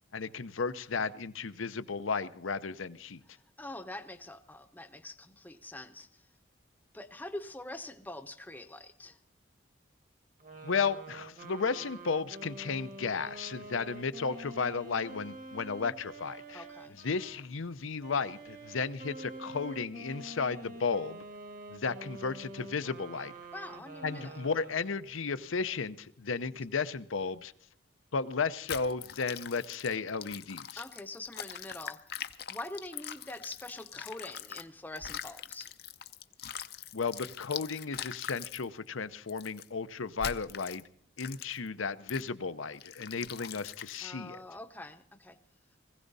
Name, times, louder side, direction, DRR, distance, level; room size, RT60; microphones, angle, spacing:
voice 1, 0.1-3.2 10.6-16.6 17.0-21.2 21.7-23.3 24.0-27.5 28.1-30.8 36.9-40.8 41.2-44.4, left 5 dB, 85° left, 0.7 m, -34 dB
voice 2, 3.6-6.2 6.9-9.2 16.5-17.0 23.5-24.4 30.8-32.2 32.5-35.7 44.0-45.4, left 2 dB, 10° left, 0.8 m, -44 dB
sound 1, 10.4-17.4 18.0-25.2, right 2 dB, 40° right, 1.4 m, -47 dB
sound 2, 28.7-34.6 35.0-38.6 39.3-39.7 40.2-40.8 41.2-41.7 42.1-42.3 42.8-44.1, left 9 dB, 50° left, 0.6 m, -42 dB
20.0 x 16.0 x 4.1 m
head